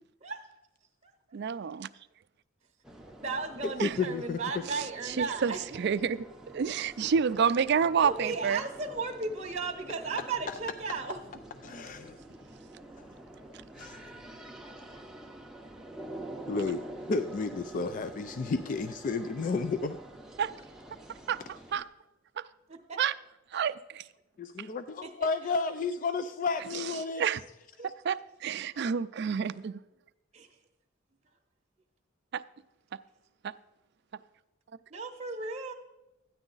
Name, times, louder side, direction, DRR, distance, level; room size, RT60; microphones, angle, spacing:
voice 1, 1.3-1.9 3.8-4.0 4.7-6.3 6.5-8.6 20.4-20.5 21.3-21.4 21.7-21.8 22.4-22.5 23.0-23.1 23.5-24.0 24.6-24.7 26.7-26.8 27.2-27.4 28.0-29.8 32.3-32.4 33.4-33.5, right 7 dB, 55° right, 13 dB, 0.4 m, -29 dB
sound 1, 2.8-21.8, right 1 dB, 5° right, 0.7 m, -47 dB
voice 2, 3.0-5.8 8.0-11.2 11.7-11.8 22.7-23.0 25.0-25.1 27.8-27.9 30.3-30.5 34.9-35.7, right 4 dB, 35° right, 0 dB, 0.8 m, -35 dB
voice 3, 3.8-4.4 11.6-12.2 13.8-14.1 16.5-20.0 24.4-27.2, left 4 dB, 40° left, 10 dB, 0.4 m, -32 dB
13.5 x 9.7 x 3.9 m, 0.96 s
head